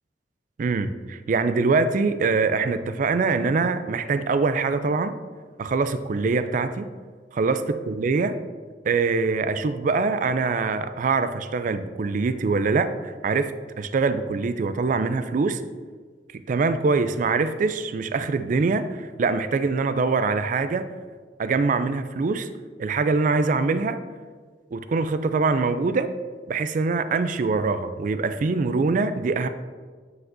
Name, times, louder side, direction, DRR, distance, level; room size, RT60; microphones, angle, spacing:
voice 1, 0.6-5.1 5.6-6.9 7.3-8.4 8.9-13.5 13.8-15.6 16.3-20.9 21.4-22.5 22.8-24.0 24.7-26.1 26.5-29.5, right 4 dB, 45° right, 11 dB, 0.3 m, -23 dB
9.5 x 4.9 x 2.6 m, 1.5 s
head